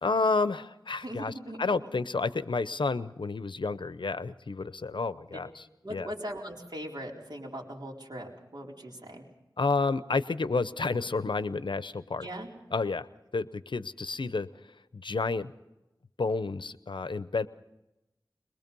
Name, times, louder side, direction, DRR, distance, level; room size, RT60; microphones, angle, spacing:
voice 1, 0.0-1.3 1.6-5.5 5.9-6.1 9.6-12.3 12.7-13.1 13.3-14.5 14.9-15.5 16.2-17.5, left 3 dB, 90° left, 14 dB, 0.7 m, -30 dB
voice 2, 1.0-1.9 5.3-5.4 5.8-9.3 12.2-12.5, equal, 60° right, -1 dB, 4.1 m, -40 dB
22.5 x 22.0 x 5.4 m, 0.94 s
wide cardioid pair, 55°, 8 cm